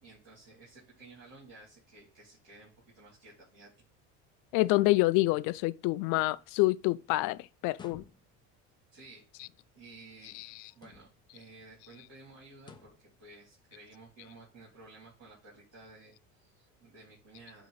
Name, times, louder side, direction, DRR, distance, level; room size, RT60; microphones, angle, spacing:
voice 1, 0.0-3.7 8.9-9.2 9.7-10.4 10.7-17.7, right 3 dB, 45° right, 3.2 m, -54 dB
voice 2, 4.5-8.0 10.3-10.5, left 20 dB, 65° left, 0.5 m, -27 dB
sound 1, 7.7-8.5 10.7-11.4 12.6-13.1, left 4 dB, 15° left, 0.7 m, -53 dB
8.5 x 3.1 x 3.9 m
cardioid pair, 125°, 34 cm